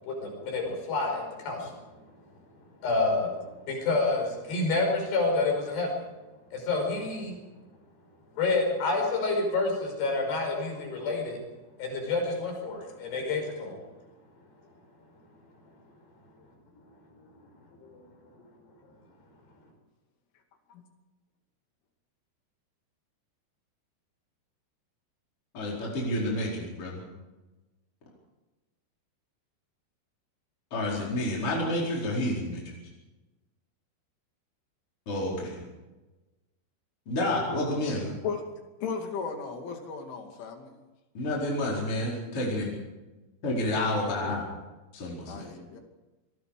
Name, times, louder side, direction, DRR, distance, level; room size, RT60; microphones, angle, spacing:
voice 1, 0.0-1.8 2.8-6.1 6.5-7.4 8.4-11.4 11.8-13.8 17.4-17.5 17.8-18.1, left 3 dB, 60° left, 2 dB, 7.3 m, -28 dB
voice 2, 25.5-27.1 30.7-32.8 35.1-35.6 37.1-38.1 41.1-42.8 43.4-44.4 44.9-45.5, left 1 dB, 30° left, -4 dB, 5.2 m, -29 dB
voice 3, 38.8-40.7 43.9-44.5 45.3-45.8, left 5 dB, 80° left, 4 dB, 5.0 m, -36 dB
25.5 x 21.0 x 5.1 m, 1.1 s
omnidirectional pair, 5.4 m